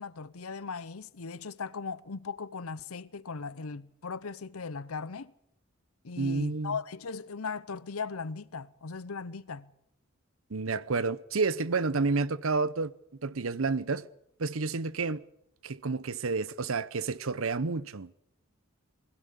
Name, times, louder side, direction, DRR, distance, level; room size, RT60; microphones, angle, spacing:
voice 1, 0.0-5.3 6.0-9.7, left 5 dB, 85° left, 0.8 m, -38 dB
voice 2, 6.2-6.8 10.5-12.9 13.2-14.1 14.4-15.2 15.6-18.1, right 4 dB, 70° right, 0.8 m, -30 dB
21.0 x 16.0 x 8.4 m
head